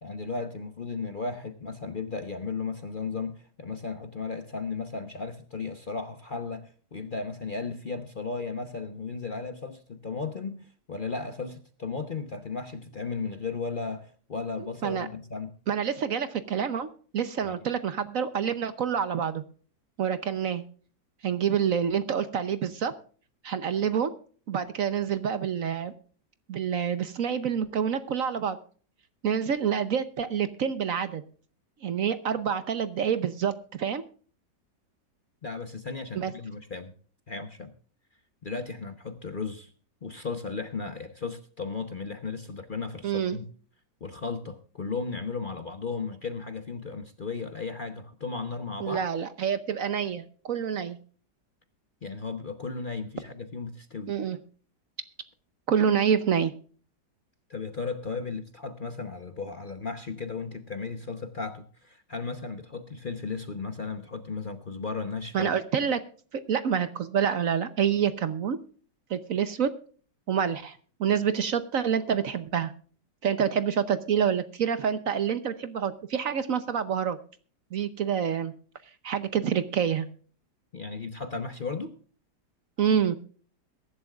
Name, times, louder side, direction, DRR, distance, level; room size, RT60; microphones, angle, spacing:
voice 1, 0.0-15.5 17.4-17.5 35.4-36.9 37.3-37.7 38.4-39.7 40.0-43.5 44.0-49.0 52.0-54.2 57.5-65.5 80.7-82.0, left 4 dB, 40° left, 0.9 m, -35 dB
voice 2, 15.7-16.9 17.1-19.4 20.0-20.6 21.2-22.9 23.4-24.1 24.5-25.9 26.5-28.6 29.2-31.2 31.8-34.0 36.1-36.3 43.0-43.4 48.8-51.0 54.1-54.4 55.7-56.5 65.3-66.0 66.3-68.6 69.1-69.7 70.3-72.7 73.2-77.2 77.7-78.5 79.0-80.1 82.8-83.1, right 7 dB, 60° right, 1.1 m, -27 dB
22.0 x 11.5 x 2.4 m
omnidirectional pair, 1.9 m